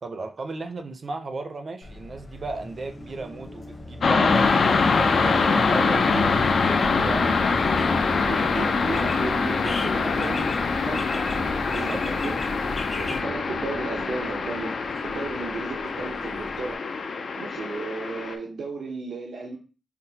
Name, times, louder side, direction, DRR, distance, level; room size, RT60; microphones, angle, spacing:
voice 1, 0.0-4.5 5.0-7.3 11.6-12.0, right 3 dB, 45° right, 7 dB, 0.5 m, -35 dB
Car passing by, 1.8-16.7, left 1 dB, 25° left, 0.8 m, -40 dB
sound 1, 4.0-18.4, left 4 dB, 65° left, 0.4 m, -24 dB
sound 2, 4.3-13.2, left 1 dB, 45° left, 1.2 m, -36 dB
voice 2, 5.2-6.4 8.0-10.5 10.8-11.3 11.7-12.3 13.0-14.8 15.0-16.8 17.4-19.6, right 3 dB, 90° right, -2 dB, 0.6 m, -34 dB
5.8 x 2.1 x 2.7 m, 0.35 s
wide cardioid pair, 135°, 0 cm